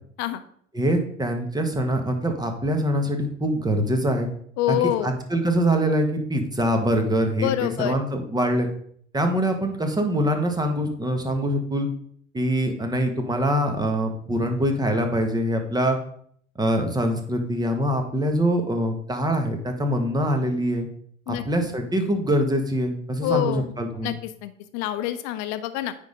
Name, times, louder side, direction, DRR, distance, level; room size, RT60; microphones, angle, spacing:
voice 1, 0.7-4.3 4.7-8.7 9.1-11.9 12.3-16.0 16.6-20.9 21.3-24.1, equal, 10° right, 5 dB, 1.4 m, -24 dB
voice 2, 4.6-5.1 7.4-8.0 21.3-21.4 23.2-23.7 24.0-24.1 24.4-26.0, left 12 dB, 45° left, 11 dB, 0.8 m, -26 dB
9.2 x 3.8 x 5.1 m, 0.62 s
figure-of-eight pair, 80°, 38 cm